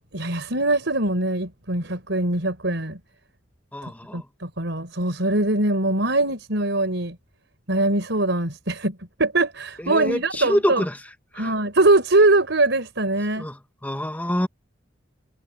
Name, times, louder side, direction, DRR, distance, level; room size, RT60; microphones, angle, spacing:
voice 1, 0.1-3.0 4.1-7.2 7.7-10.8 11.3-13.4, right 2 dB, 80° right, 4.7 m, -22 dB
voice 2, 3.7-4.2 9.9-11.0 11.4-11.5 13.4-13.6 13.8-14.5, equal, 10° left, 1.8 m, -25 dB
head